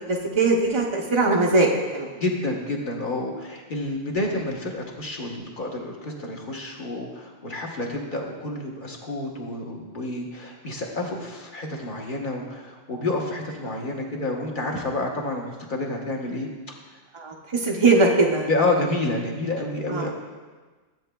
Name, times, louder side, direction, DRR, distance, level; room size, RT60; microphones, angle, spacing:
voice 1, 0.0-2.1 17.1-18.5 19.9-20.1, right 3 dB, 40° right, -1 dB, 0.4 m, -21 dB
voice 2, 2.2-16.5 18.5-20.1, left 2 dB, 45° left, 0 dB, 1.1 m, -29 dB
12.0 x 7.6 x 2.2 m, 1.3 s
omnidirectional pair, 1.3 m